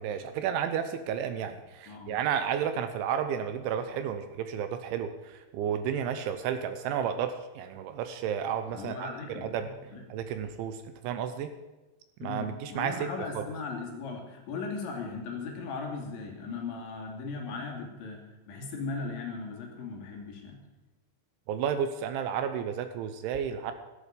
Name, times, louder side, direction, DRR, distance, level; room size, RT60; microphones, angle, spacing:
voice 1, 0.0-9.7 10.1-11.5 12.2-13.1 13.4-13.5 21.5-23.7, right 8 dB, 80° right, 9 dB, 3.0 m, -32 dB
voice 2, 1.9-2.2 8.7-10.0 12.2-20.6, left 4 dB, 65° left, 1 dB, 4.8 m, -38 dB
16.0 x 14.0 x 5.2 m, 1.1 s
omnidirectional pair, 5.8 m